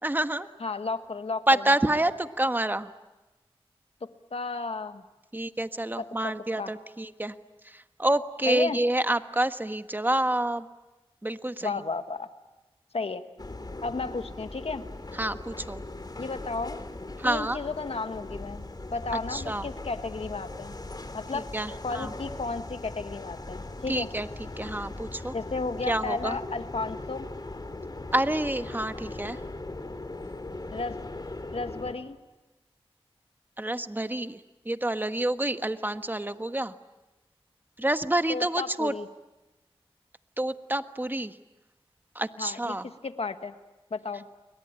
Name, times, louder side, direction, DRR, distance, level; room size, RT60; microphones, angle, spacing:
voice 1, 0.0-0.5 1.5-2.9 5.3-7.3 7.6-10.7 11.2-11.8 15.1-15.8 17.2-17.6 19.3-19.7 21.3-22.1 23.9-24.3 24.6-25.3 25.9-26.4 28.1-29.4 33.6-34.4 34.6-36.7 37.8-38.9 40.4-41.4 42.1-42.9, right 1 dB, 20° right, 9 dB, 1.3 m, -28 dB
voice 2, 0.6-1.4 4.3-5.0 6.0-6.1 6.6-6.7 8.5-8.8 11.6-12.3 12.9-13.2 13.8-14.8 16.2-16.8 17.2-18.6 18.9-20.7 21.1-21.5 21.8-24.1 25.3-27.3 30.7-31.0 31.5-32.2 38.3-39.1 42.4-42.8 43.0-43.5 43.9-44.2, left 3 dB, 75° left, 9 dB, 1.5 m, -33 dB
sound 1, 13.4-32.0, left 2 dB, 40° left, 2.8 m, -39 dB
30.0 x 22.5 x 8.9 m, 1.1 s
wide cardioid pair, 50°, 10 cm